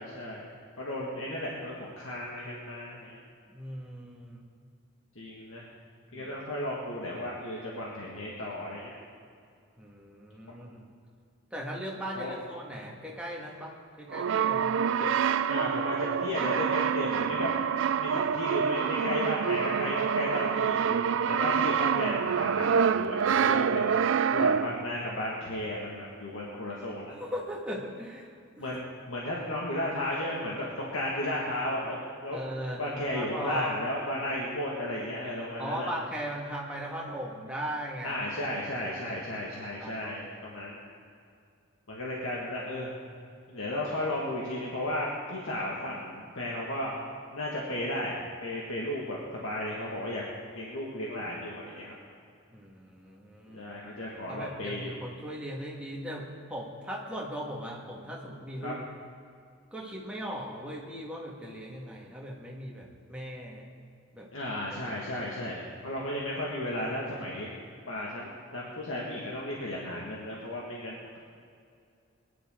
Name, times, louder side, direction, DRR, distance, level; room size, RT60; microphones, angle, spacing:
voice 1, 0.0-3.2 5.2-5.7 6.1-8.9 12.2-12.3 15.0-15.1 15.5-17.5 18.0-23.8 24.3-27.2 28.6-32.4 32.8-35.9 38.0-40.9 41.9-42.9 43.5-47.0 47.3-50.2 50.5-51.9 53.5-54.9 58.6-58.8 64.3-67.5 67.9-71.2, left 1 dB, 75° left, -4 dB, 2.0 m, -34 dB
voice 2, 3.5-4.4 6.1-6.3 9.8-10.9 11.5-13.7 14.0-14.8 24.4-24.5 27.2-28.3 28.6-28.8 32.3-33.8 35.6-38.2 39.1-39.5 39.8-40.4 52.5-53.7 54.3-58.8 59.7-63.7 64.1-64.3, equal, 5° right, -3 dB, 1.9 m, -38 dB
Brass instrument, 14.1-24.9, right 7 dB, 65° right, 0.3 m, -27 dB
21.0 x 11.0 x 3.9 m, 2.3 s
head